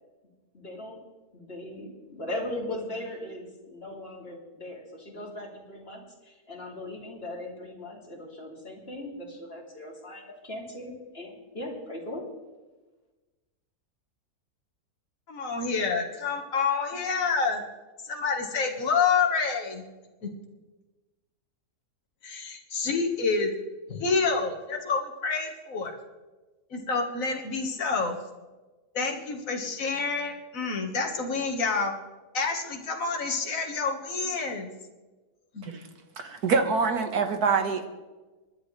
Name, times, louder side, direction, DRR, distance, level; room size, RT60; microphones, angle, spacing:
voice 1, 0.5-1.0 1.3-12.2, left 1 dB, 40° left, -2 dB, 3.3 m, -39 dB
voice 2, 15.3-17.6 18.0-19.8 20.2-20.3 22.2-23.5 23.9-25.9 26.7-28.2 28.9-31.9 32.3-34.7 35.5-35.7, left 4 dB, 60° left, 2 dB, 2.0 m, -28 dB
voice 3, 36.2-37.9, right 5 dB, 75° right, 6 dB, 2.0 m, -25 dB
25.5 x 11.0 x 3.3 m, 1.2 s
omnidirectional pair, 1.6 m